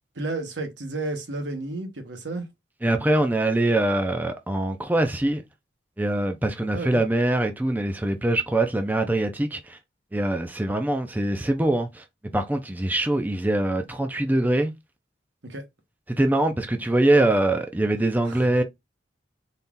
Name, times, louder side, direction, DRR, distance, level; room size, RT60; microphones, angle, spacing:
voice 1, 0.1-2.5 6.7-7.0 15.4-15.6 17.1-17.3 18.2-18.5, right 2 dB, 75° right, 1.1 m, -32 dB
voice 2, 2.8-5.4 6.0-9.8 10.1-12.0 12.3-14.7 16.1-18.6, right 1 dB, 10° right, 0.4 m, -23 dB
4.0 x 2.4 x 3.6 m
head